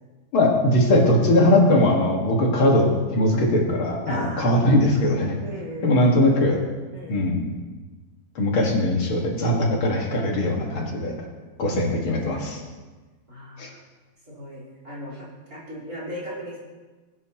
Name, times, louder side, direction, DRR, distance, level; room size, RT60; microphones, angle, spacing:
voice 1, 0.3-5.4 5.8-6.6 7.1-7.5 8.4-11.1 11.6-12.6 13.6-13.7, left 1 dB, 75° left, -1 dB, 2.6 m, -20 dB
voice 2, 4.1-4.5 4.8-4.9 5.4-6.1 6.9-7.3 11.7-12.5 13.3-13.7 14.3-16.6, equal, 40° right, -6 dB, 4.6 m, -37 dB
20.5 x 9.4 x 3.0 m, 1.3 s
omnidirectional pair, 2.3 m